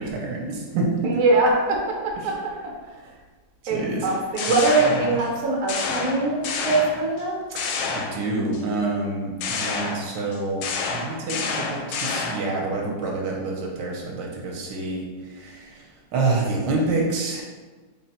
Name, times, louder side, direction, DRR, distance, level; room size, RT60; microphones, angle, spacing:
voice 1, 0.0-1.2 3.6-4.1 7.5-17.4, right 3 dB, 80° right, -2 dB, 1.3 m, -27 dB
voice 2, 1.0-2.7 3.7-7.4, right 2 dB, 55° right, -1 dB, 1.0 m, -22 dB
sound 1, 4.1-5.4 5.7-7.2 7.6-8.6 9.4-12.6, left 4 dB, 80° left, 1.2 m, -29 dB
3.8 x 2.1 x 4.1 m, 1.4 s
omnidirectional pair, 2.0 m